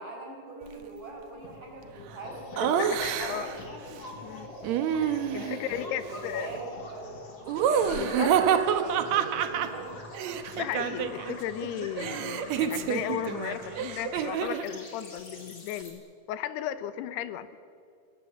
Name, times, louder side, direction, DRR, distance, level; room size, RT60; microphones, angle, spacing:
voice 1, 0.0-2.9 3.2-3.5 4.8-7.2 7.7-9.9, right 3 dB, 55° right, -1 dB, 6.7 m, -41 dB
sound 1, 1.4-14.2, left 3 dB, 50° left, 2.8 m, -51 dB
sound 2, 2.2-15.9, left 1 dB, 30° left, 3.7 m, -45 dB
Laughter, 2.6-3.6 4.6-5.7 7.5-11.3 11.6-14.7, right 8 dB, 85° right, 1.5 m, -28 dB
voice 2, 2.8-3.5 4.2-4.5 5.0-6.5 7.9-8.3 10.5-16.0 16.3-17.5, left 11 dB, 80° left, 13 dB, 2.8 m, -35 dB
25.5 x 20.0 x 7.2 m, 2.4 s
omnidirectional pair, 4.7 m